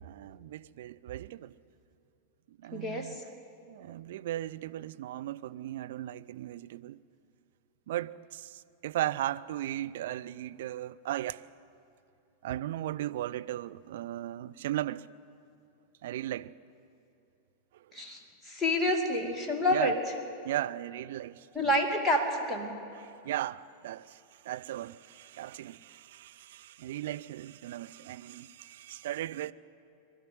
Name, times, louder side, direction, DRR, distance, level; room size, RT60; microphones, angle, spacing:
voice 1, 0.0-1.5 2.5-3.2 3.7-7.0 7.9-11.4 12.4-15.1 16.0-16.5 19.7-19.9 20.4-21.7 23.0-29.5, right 13 dB, 55° right, 0.5 m, -37 dB
voice 2, 2.7-3.2 17.9-20.0 21.5-22.8, left 1 dB, 5° left, 2.5 m, -28 dB
24.0 x 12.5 x 9.5 m
figure-of-eight pair, 90°, 0 cm